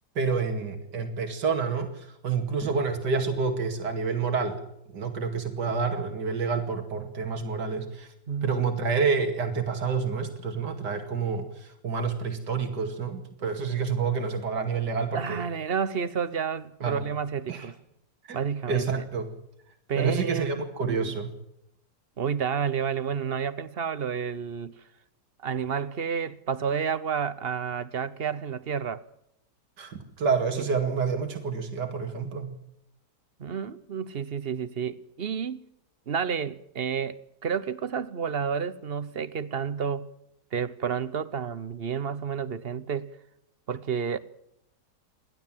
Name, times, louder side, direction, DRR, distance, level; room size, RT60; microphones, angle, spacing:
voice 1, 0.2-4.6 4.9-8.1 8.4-15.4 16.8-17.0 17.5-17.7 18.3-18.4 18.7-19.3 20.0-21.3 29.8-32.5, right 5 dB, 75° right, 2.8 m, -28 dB
voice 2, 15.1-17.8 18.3-19.0 19.9-21.1 22.2-24.7 25.4-29.0 30.6-30.7 33.4-35.6 36.1-40.1 40.5-43.1 43.7-44.2, right 7 dB, 45° right, 0.9 m, -30 dB
29.0 x 12.0 x 7.5 m
omnidirectional pair, 1.8 m